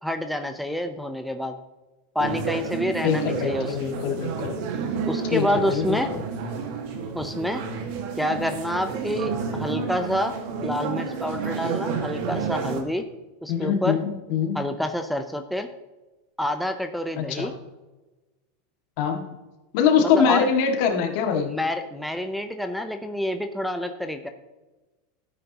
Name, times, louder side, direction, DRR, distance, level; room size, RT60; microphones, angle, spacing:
voice 1, 0.0-1.6 2.1-3.9 5.1-6.1 7.2-7.6 8.2-10.4 10.6-13.1 13.4-14.0 14.5-15.7 16.4-17.5 20.0-20.5 21.4-24.3, left 1 dB, ahead, 6 dB, 0.7 m, -28 dB
sound 1, 2.2-12.8, right 5 dB, 60° right, 1.8 m, -30 dB
voice 2, 3.0-4.6 5.3-6.2 13.5-14.6 17.2-17.5 19.0-19.2 19.7-21.5, left 7 dB, 60° left, 4 dB, 2.1 m, -23 dB
13.0 x 9.1 x 3.0 m, 1.1 s
supercardioid pair, 115°, 0 cm